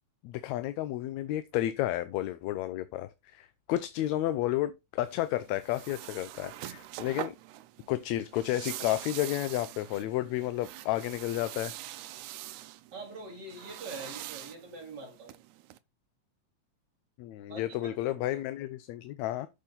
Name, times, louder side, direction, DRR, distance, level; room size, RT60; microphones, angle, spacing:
voice 1, 0.2-7.4 7.9-11.7 17.2-19.5, left 14 dB, 80° left, 1.8 m, -32 dB
sound 1, 5.0-15.8, right 15 dB, 80° right, 2.0 m, -44 dB
voice 2, 12.9-15.3 17.5-18.0, right 3 dB, 35° right, 3.6 m, -44 dB
8.4 x 6.8 x 4.0 m
omnidirectional pair, 3.3 m